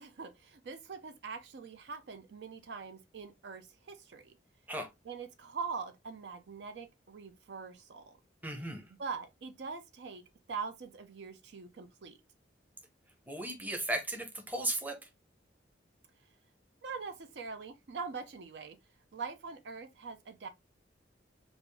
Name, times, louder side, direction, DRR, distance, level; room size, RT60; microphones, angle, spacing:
voice 1, 0.0-4.3 5.1-8.2 9.0-10.2 10.5-12.2 16.8-18.8 19.1-20.5, right 5 dB, 65° right, 0.5 m, -43 dB
voice 2, 8.4-8.8 13.3-15.1, right 1 dB, 10° right, 0.7 m, -36 dB
3.5 x 2.5 x 3.3 m
head